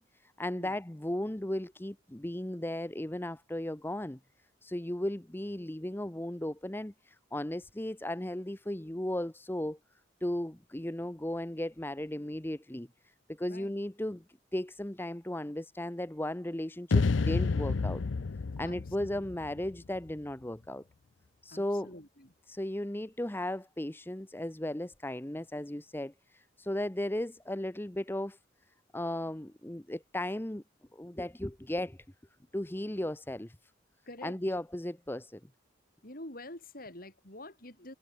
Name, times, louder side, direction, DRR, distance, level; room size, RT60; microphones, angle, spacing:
voice 1, 0.0-4.2 4.6-9.8 10.2-12.9 13.3-14.2 14.5-18.0 18.6-20.8 21.4-21.9 22.5-28.4 28.9-30.6 30.9-32.0 32.5-33.6 34.2-35.4, left 1 dB, 10° left, 0.8 m, -36 dB
voice 2, 13.4-13.7 18.6-19.1 21.5-22.3 34.1-34.4 36.0-37.9, left 1 dB, 50° left, 6.6 m, -47 dB
sound 1, 16.9-20.1, left 4 dB, 80° left, 0.6 m, -30 dB
head